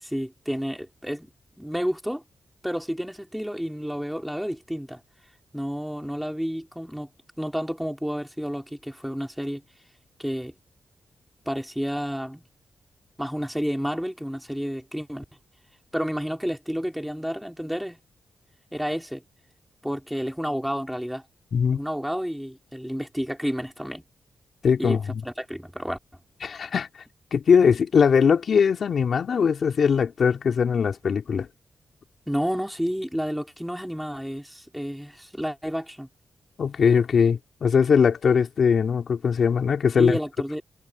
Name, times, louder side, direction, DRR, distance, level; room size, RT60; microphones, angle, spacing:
voice 1, 0.0-1.3 1.6-2.2 2.6-5.0 5.5-7.1 7.4-9.6 10.2-10.5 11.5-12.4 13.2-15.2 15.9-18.0 18.7-19.2 19.8-21.2 21.7-24.0 24.8-26.0 32.3-36.1 40.0-40.6, equal, ahead, 4.6 m, -30 dB
voice 2, 21.5-21.8 24.6-25.2 26.4-26.9 27.3-31.5 36.6-40.2, left 6 dB, 65° left, 3.4 m, -21 dB
cardioid pair, 65°, 0 cm